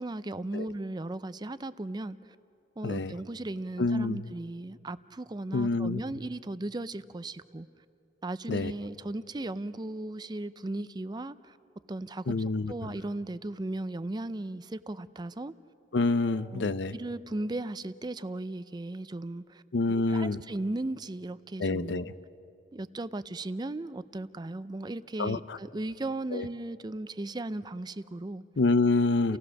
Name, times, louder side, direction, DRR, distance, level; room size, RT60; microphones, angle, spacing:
voice 1, 0.0-2.2 2.8-7.7 8.2-11.6 11.9-12.3 12.7-15.5 16.3-19.6 19.9-22.1 22.7-28.4 29.3-29.4, right 2 dB, 25° right, 0.5 m, -36 dB
voice 2, 2.8-3.1 3.8-4.3 5.5-6.0 8.5-8.7 12.3-12.9 15.9-16.9 19.7-20.4 21.6-22.1 25.2-25.6 26.3-26.5 28.6-29.4, left 3 dB, 80° left, 0.6 m, -27 dB
30.0 x 16.5 x 6.4 m
head